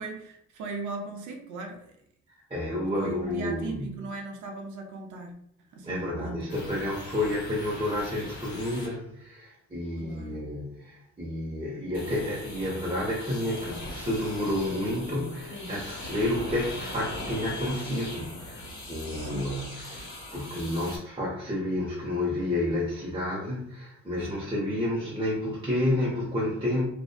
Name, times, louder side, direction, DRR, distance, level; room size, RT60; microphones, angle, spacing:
voice 1, 0.0-2.0 3.0-5.3 5.7-6.5 10.0-10.4 19.1-19.5 24.3-24.5, right 3 dB, 75° right, 2 dB, 0.6 m, -38 dB
voice 2, 2.5-3.9 5.8-26.8, left 1 dB, 20° right, -5 dB, 0.7 m, -30 dB
sound 1, 6.5-9.0 11.9-21.0, left 2 dB, 65° left, 1.0 m, -40 dB
2.5 x 2.3 x 2.2 m, 0.73 s
cardioid pair, 90°, 30 cm